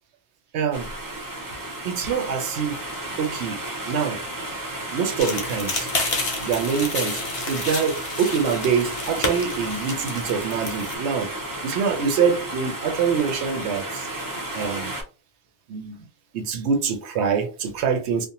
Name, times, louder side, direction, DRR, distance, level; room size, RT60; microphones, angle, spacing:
voice 1, 0.5-0.9 1.8-2.8 3.2-4.2 4.9-5.9 6.4-7.2 7.5-11.3 11.6-14.1 14.5-14.9 15.7-16.0 16.3-18.3, right 6 dB, 75° right, 0.9 m, -25 dB
sound 1, 0.7-15.0, right 1 dB, 35° right, 0.3 m, -33 dB
sound 2, 5.2-10.9, left 2 dB, 40° left, 0.6 m, -30 dB
2.5 x 2.0 x 2.8 m
omnidirectional pair, 1.2 m